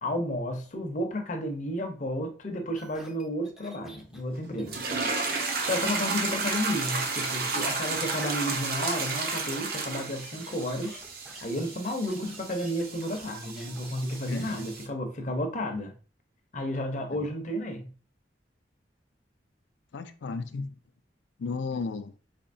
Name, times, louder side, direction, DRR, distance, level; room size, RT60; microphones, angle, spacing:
voice 1, 0.0-4.8 5.7-11.0 11.4-15.9 16.5-17.9, equal, 40° left, 0.6 m, -32 dB
sound 1, 2.7-14.5 14.9-15.0, equal, 5° right, 0.4 m, -51 dB
Buzz, 3.8-12.0, right 3 dB, 85° right, 1.4 m, -55 dB
sound 2, 4.7-14.9, right 4 dB, 55° right, 0.6 m, -32 dB
voice 2, 14.3-14.6 17.1-17.3 19.9-20.7 21.4-22.2, left 4 dB, 80° left, 0.4 m, -34 dB
4.3 x 2.7 x 2.6 m
head